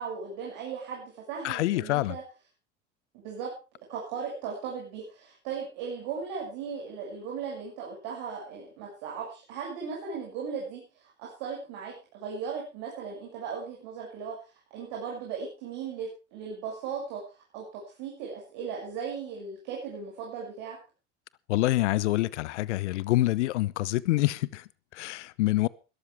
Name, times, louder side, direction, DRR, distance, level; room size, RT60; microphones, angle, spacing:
voice 1, 0.0-2.2 3.1-3.5 3.9-20.8, right 6 dB, 65° right, 6.9 m, -37 dB
voice 2, 1.4-2.2 21.5-25.7, left 17 dB, 75° left, 0.9 m, -26 dB
21.0 x 13.0 x 3.5 m
hypercardioid pair, 80°, 35 cm